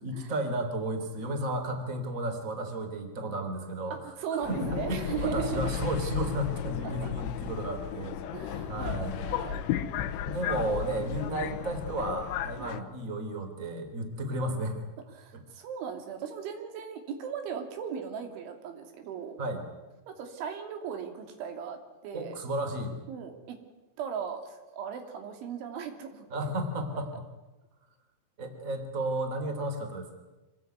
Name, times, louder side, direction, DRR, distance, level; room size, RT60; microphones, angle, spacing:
voice 1, 0.0-8.2 8.7-9.2 10.2-14.8 15.3-15.4 19.4-19.6 22.1-23.0 26.3-27.3 28.4-30.1, right 1 dB, 20° right, 6 dB, 3.2 m, -33 dB
voice 2, 3.9-5.7 6.8-7.1 8.3-9.6 10.0-10.3 12.6-12.7 15.1-19.4 20.1-22.4 23.1-23.6 24.0-26.3, right 7 dB, 85° right, 5 dB, 5.1 m, -37 dB
Subway metro underground, 4.4-12.8, left 10 dB, 90° left, 3.5 m, -34 dB
26.0 x 20.0 x 9.5 m, 1.1 s
omnidirectional pair, 5.3 m